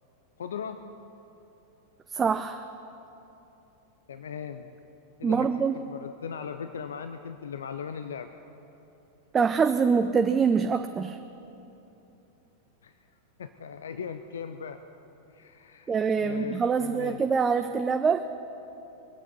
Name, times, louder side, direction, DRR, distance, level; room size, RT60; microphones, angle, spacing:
voice 1, 0.4-0.9 4.1-4.7 5.2-8.3 12.8-12.9 13.4-14.8 15.3-17.2, left 7 dB, 65° left, 9 dB, 0.6 m, -38 dB
voice 2, 2.1-2.7 5.2-5.8 9.3-11.2 15.9-18.3, right 5 dB, 20° right, 8 dB, 0.5 m, -25 dB
23.0 x 8.4 x 6.8 m, 3.0 s
figure-of-eight pair, 90°, 0 cm